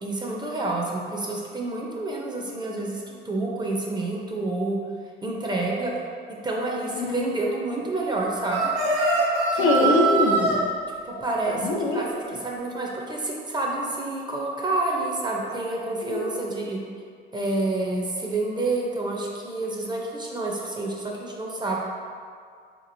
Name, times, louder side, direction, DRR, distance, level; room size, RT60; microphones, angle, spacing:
voice 1, 0.0-4.8 5.2-5.9 6.4-8.7 9.5-9.9 11.0-12.1 12.4-16.8 17.3-21.8, right 2 dB, 20° right, -2 dB, 0.6 m, -28 dB
voice 2, 6.9-7.3 9.6-10.6 11.5-12.0 16.0-16.4, left 2 dB, 80° left, -2 dB, 0.6 m, -23 dB
sound 1, 8.5-10.6, right 2 dB, 90° right, 0.8 m, -22 dB
3.6 x 2.9 x 2.6 m, 2.1 s
cardioid pair, 90°, 20 cm